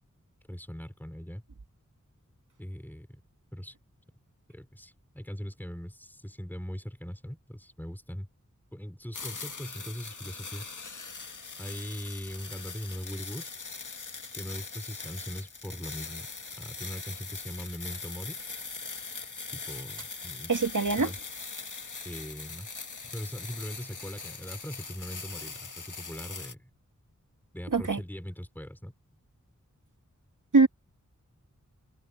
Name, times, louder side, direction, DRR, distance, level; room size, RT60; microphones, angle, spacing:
voice 1, 0.5-1.4 2.6-3.2 3.5-3.7 4.5-8.3 8.7-11.0 11.6-13.5 14.3-16.3 16.6-18.4 19.5-20.5 20.9-21.2 22.0-22.7 23.1-26.7 27.5-28.9, equal, 5° left, 5.5 m, -40 dB
sound 1, 9.1-26.5, left 4 dB, 75° left, 2.0 m, -41 dB
voice 2, 20.5-21.1 27.7-28.0 30.5-30.7, right 4 dB, 80° right, 2.4 m, -22 dB
wide cardioid pair, 55°, 31 cm